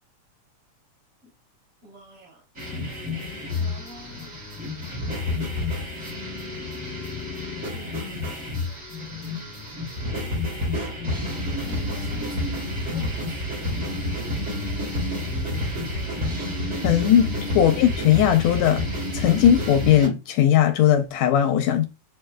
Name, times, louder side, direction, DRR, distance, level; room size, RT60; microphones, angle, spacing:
voice 1, 1.8-2.4 3.4-4.3 7.7-8.5 11.4-12.7 12.9-13.6, left 1 dB, 50° right, 3.7 m, -46 dB
sound 1, 2.6-20.1, left 1 dB, 25° right, 2.0 m, -29 dB
voice 2, 16.8-17.3 17.6-18.9 19.1-21.9, left 10 dB, 80° left, 1.7 m, -18 dB
6.4 x 3.6 x 2.2 m
omnidirectional pair, 3.4 m